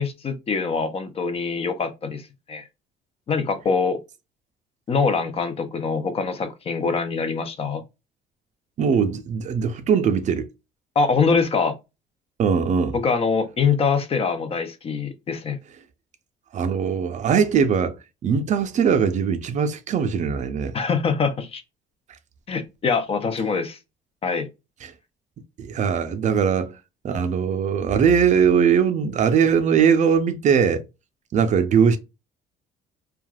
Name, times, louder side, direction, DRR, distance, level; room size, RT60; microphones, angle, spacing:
voice 1, 0.0-2.2 2.5-2.7 3.3-4.0 4.9-7.8 11.0-11.7 12.9-15.6 20.7-21.6 22.5-23.8 24.2-24.5, left 5 dB, 35° left, 0.5 m, -24 dB
voice 2, 8.8-10.5 12.4-13.0 16.5-17.9 18.2-20.7 24.8-24.9 25.6-26.7 27.0-30.8 31.3-32.0, right 7 dB, 45° right, 0.5 m, -20 dB
3.2 x 2.4 x 2.3 m
cardioid pair, 110°, 17 cm